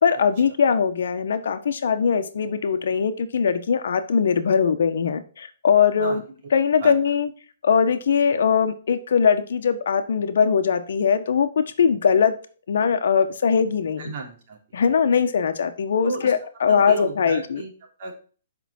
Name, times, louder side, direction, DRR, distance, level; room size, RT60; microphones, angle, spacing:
voice 1, 0.0-6.2 6.5-7.3 7.6-12.3 12.7-14.1 14.7-17.6, left 6 dB, 70° left, 9 dB, 1.2 m, -21 dB
voice 2, 14.0-14.8 16.0-16.3 16.7-18.1, right 4 dB, 45° right, 0 dB, 3.1 m, -34 dB
8.0 x 5.8 x 4.4 m, 0.39 s
hypercardioid pair, 165°, 0 cm